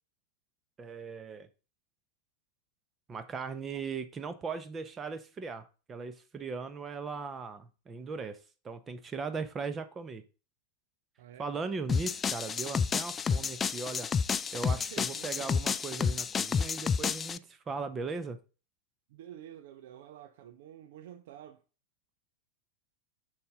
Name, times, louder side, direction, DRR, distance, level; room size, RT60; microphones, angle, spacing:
voice 1, 0.8-1.5 3.1-10.2 11.4-14.1 14.5-18.4, right 4 dB, 20° right, 0.9 m, -38 dB
voice 2, 11.2-11.5 14.9-15.5 19.1-21.6, right 11 dB, 55° right, 0.6 m, -49 dB
sound 1, 11.9-17.4, left 6 dB, 20° left, 0.3 m, -30 dB
7.0 x 6.6 x 3.7 m
figure-of-eight pair, 90°, 0 cm